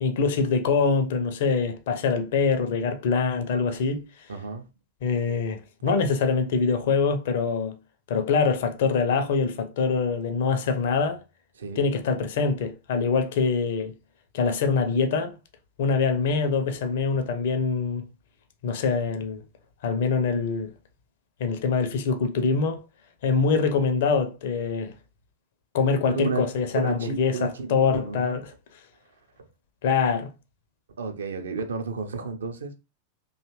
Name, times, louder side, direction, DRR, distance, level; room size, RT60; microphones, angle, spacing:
voice 1, 0.0-4.0 5.0-7.8 8.1-11.2 11.8-13.9 14.3-15.4 15.8-18.1 18.6-19.4 19.8-20.7 21.4-22.8 23.2-24.9 25.7-28.5 29.8-30.3, left 5 dB, 55° left, 0.5 m, -24 dB
voice 2, 4.3-4.7 5.9-6.0 11.6-11.8 17.1-17.2 26.1-26.5 26.7-28.4 29.4-29.5 31.0-32.7, right 4 dB, 65° right, 0.5 m, -32 dB
2.7 x 2.3 x 3.0 m
figure-of-eight pair, 90°, 0 cm